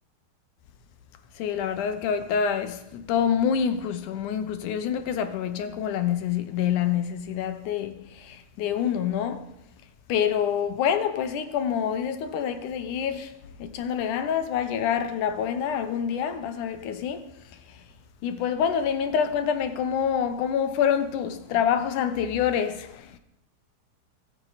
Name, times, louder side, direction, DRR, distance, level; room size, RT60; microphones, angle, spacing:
voice 1, 1.4-9.5 10.1-17.4 17.7-17.8 18.2-23.2, left 8 dB, 70° left, 2.1 m, -27 dB
24.5 x 9.6 x 4.1 m
omnidirectional pair, 4.4 m